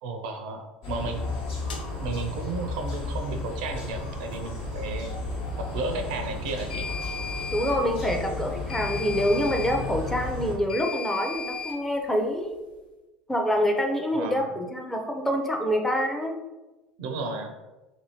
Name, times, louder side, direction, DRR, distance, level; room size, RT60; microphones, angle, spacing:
voice 1, 0.0-1.3 2.0-5.1 5.6-6.9 14.1-14.5 17.0-17.5, right 3 dB, 70° right, 4 dB, 0.4 m, -33 dB
sound 1, 0.8-10.6, left 2 dB, 65° left, 1.0 m, -33 dB
sound 2, 1.7-1.8 6.7-7.8 8.7-9.8 10.7-11.8, left 5 dB, 90° left, 0.4 m, -35 dB
voice 2, 7.5-12.6 13.3-16.4, equal, 5° left, 2 dB, 0.5 m, -26 dB
2.6 x 2.6 x 2.8 m, 1.1 s
hypercardioid pair, 75°, 5 cm